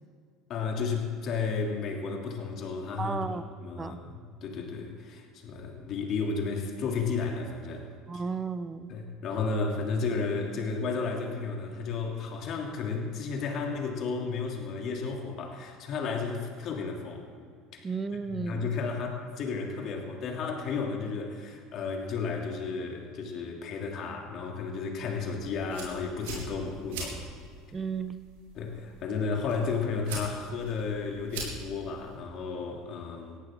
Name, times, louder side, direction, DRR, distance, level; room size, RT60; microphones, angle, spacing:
voice 1, 0.5-7.9 8.1-8.2 8.9-17.3 17.7-17.9 18.3-27.3 28.5-33.4, left 4 dB, 50° left, 1 dB, 3.1 m, -33 dB
voice 2, 3.0-3.4 3.8-4.0 8.1-8.9 17.8-18.7 27.7-28.2, right 5 dB, 25° right, 13 dB, 0.8 m, -33 dB
sound 1, 25.4-32.2, right 3 dB, 80° right, 4.3 m, -43 dB
18.5 x 15.0 x 3.9 m, 2.1 s
hypercardioid pair, 80°, 0 cm